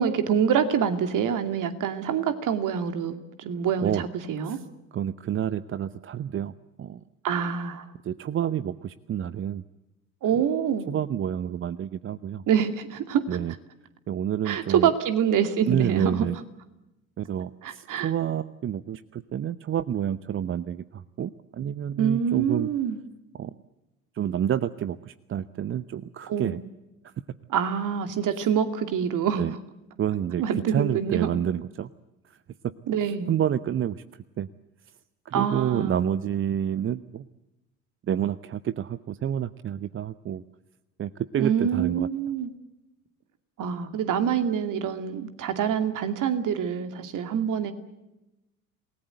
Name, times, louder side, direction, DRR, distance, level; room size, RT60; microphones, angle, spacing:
voice 1, 0.0-4.6 7.2-7.8 10.2-10.9 12.5-13.2 14.4-16.3 17.6-18.1 22.0-23.0 26.3-26.6 27.5-29.4 30.4-31.3 32.9-33.3 35.3-36.0 41.4-42.5 43.6-47.7, right 8 dB, 45° right, 9 dB, 2.6 m, -26 dB
voice 2, 4.9-6.5 6.8-7.0 8.0-9.6 10.9-12.4 13.3-13.5 14.1-14.9 15.7-16.4 17.2-22.7 23.3-23.5 24.1-26.6 27.0-27.1 28.4-28.5 29.3-29.5 30.0-30.4 30.7-31.9 32.2-32.4 33.3-34.5 35.2-37.2 38.1-40.4 41.0-42.1, right 9 dB, 30° right, 16 dB, 0.8 m, -29 dB
28.0 x 19.0 x 7.9 m, 0.96 s
figure-of-eight pair, 65°, 42 cm